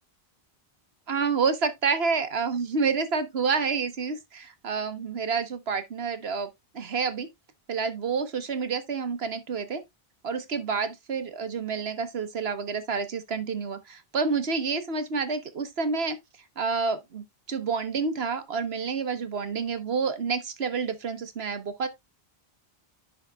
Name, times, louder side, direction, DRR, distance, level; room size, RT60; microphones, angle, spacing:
voice 1, 1.1-6.5 6.7-7.3 7.7-9.8 10.2-16.2 16.6-21.9, right 5 dB, 75° right, 1.5 m, -29 dB
10.5 x 6.4 x 2.3 m
omnidirectional pair, 1.1 m